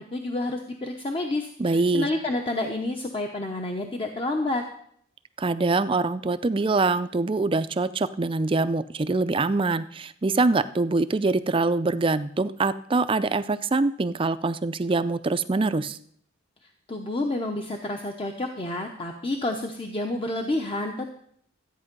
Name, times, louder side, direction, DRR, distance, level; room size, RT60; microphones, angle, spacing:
voice 1, 0.0-4.6 16.9-21.1, left 2 dB, 25° left, 3 dB, 0.8 m, -29 dB
voice 2, 1.6-2.1 5.4-16.0, right 3 dB, 25° right, 13 dB, 0.4 m, -24 dB
13.5 x 8.8 x 5.3 m, 0.65 s
head